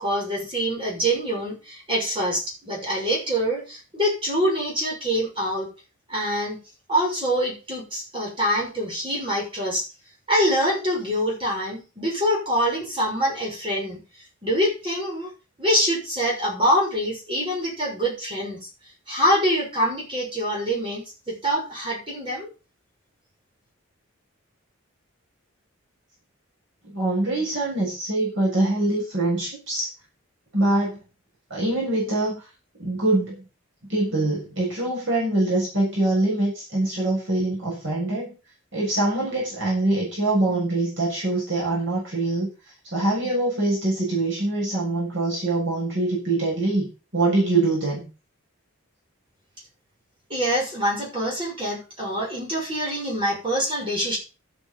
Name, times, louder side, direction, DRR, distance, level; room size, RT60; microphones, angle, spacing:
voice 1, 0.0-5.7 6.1-6.6 6.9-9.9 10.3-14.0 14.4-15.3 15.6-18.7 19.1-22.5 50.3-54.2, equal, 25° right, -2 dB, 6.3 m, -25 dB
voice 2, 26.9-29.9 30.5-31.0 31.5-32.5 32.8-33.4 33.9-38.3 38.7-42.5 42.9-48.1, right 2 dB, 60° right, -5 dB, 7.3 m, -24 dB
12.5 x 8.7 x 5.5 m, 0.33 s
head